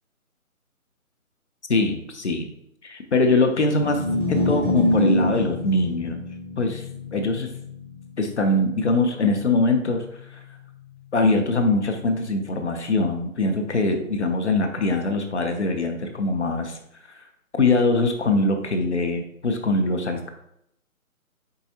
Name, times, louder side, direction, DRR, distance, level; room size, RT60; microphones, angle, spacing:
voice 1, 1.7-2.5 2.8-4.0 4.3-6.2 6.6-6.8 7.1-7.5 8.2-10.0 10.3-10.4 11.1-16.8 17.2-17.3 17.6-20.3, left 2 dB, 50° left, 4 dB, 0.7 m, -22 dB
sound 1, 3.7-10.0, left 1 dB, 10° right, 0.8 m, -26 dB
4.6 x 4.0 x 2.7 m, 0.76 s
figure-of-eight pair, 155°, 43 cm